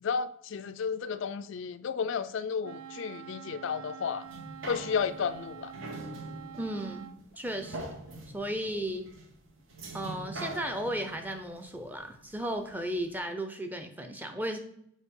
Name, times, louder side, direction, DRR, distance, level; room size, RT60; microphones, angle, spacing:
voice 1, 0.0-4.2 4.7-5.7, left 6 dB, 60° left, 0.3 m, -32 dB
Wind instrument woodwind instrument, 2.6-7.2, right 8 dB, 85° right, 0.4 m, -46 dB
sound 1, 4.2-12.7 13.2-13.3, right 2 dB, 65° right, 1.1 m, -44 dB
voice 2, 6.6-8.0 8.3-9.1 9.9-14.6, right 1 dB, 10° right, 0.5 m, -35 dB
7.1 x 4.5 x 3.7 m
head